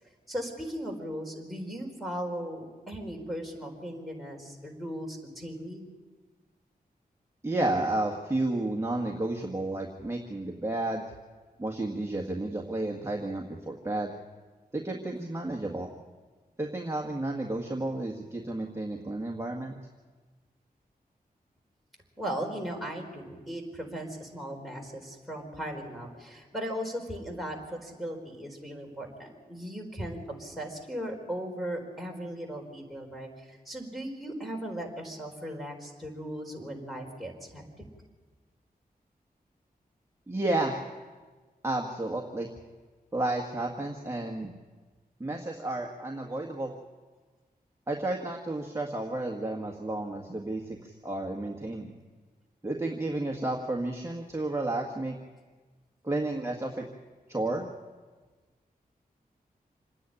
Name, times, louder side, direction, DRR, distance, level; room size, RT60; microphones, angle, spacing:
voice 1, 0.3-5.8 22.2-37.6, equal, ahead, 0 dB, 4.6 m, -37 dB
voice 2, 7.4-11.0 11.6-14.1 14.7-15.9 16.6-19.7 40.3-40.8 41.6-42.5 43.1-44.5 45.2-46.7 47.9-51.9 52.6-55.2 56.0-56.9 57.3-57.7, right 2 dB, 15° right, 0 dB, 1.8 m, -31 dB
26.5 x 10.0 x 10.0 m, 1.4 s
wide cardioid pair, 80°, 16 cm